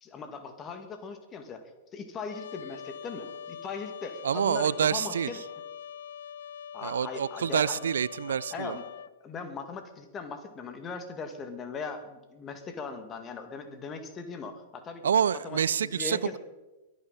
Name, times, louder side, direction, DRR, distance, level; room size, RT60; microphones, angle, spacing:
voice 1, 0.0-5.4 6.7-7.8 8.5-8.8 9.2-15.0 15.4-16.4, left 5 dB, 25° left, 7 dB, 2.2 m, -39 dB
Trumpet, 2.3-9.1, left 8 dB, 65° left, 0.6 m, -43 dB
voice 2, 4.2-5.3 6.8-8.8 15.0-16.4, right 8 dB, 70° right, 20 dB, 0.5 m, -27 dB
23.0 x 9.5 x 4.2 m, 1.1 s
figure-of-eight pair, 100°, 0 cm